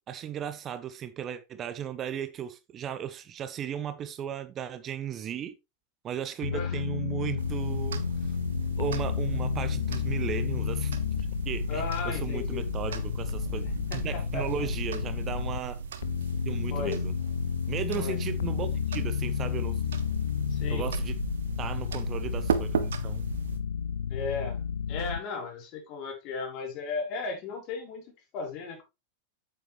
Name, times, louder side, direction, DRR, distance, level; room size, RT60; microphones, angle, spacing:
voice 1, 0.1-5.5 6.0-8.1 8.8-11.0 11.4-13.7 13.9-15.8 16.4-17.1 17.7-18.7 18.9-19.8 20.7-21.2 21.6-23.3, right 9 dB, 30° right, 0.8 m, -36 dB
sound 1, 6.4-15.6 16.0-25.2, left 8 dB, 65° left, 0.5 m, -31 dB
sound 2, 7.4-23.6, right 6 dB, 60° right, 1.2 m, -36 dB
voice 2, 11.7-12.7 13.9-14.5 16.7-17.0 18.0-18.2 20.5-20.9 24.1-24.6 24.9-28.0 28.3-28.8, left 4 dB, 40° left, 3.9 m, -35 dB
8.8 x 7.8 x 3.2 m
figure-of-eight pair, 90°, 0 cm